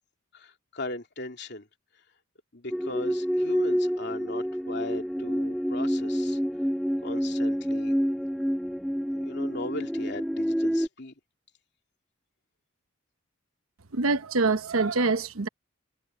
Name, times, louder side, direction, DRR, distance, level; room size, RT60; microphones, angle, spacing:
voice 1, 0.3-1.7 2.5-6.4 7.0-7.9 9.2-11.1, left 2 dB, 55° left, 3.1 m, -38 dB
sound 1, 2.7-10.9, equal, ahead, 0.4 m, -28 dB
voice 2, 13.9-15.5, right 3 dB, 90° right, 1.0 m, -25 dB
head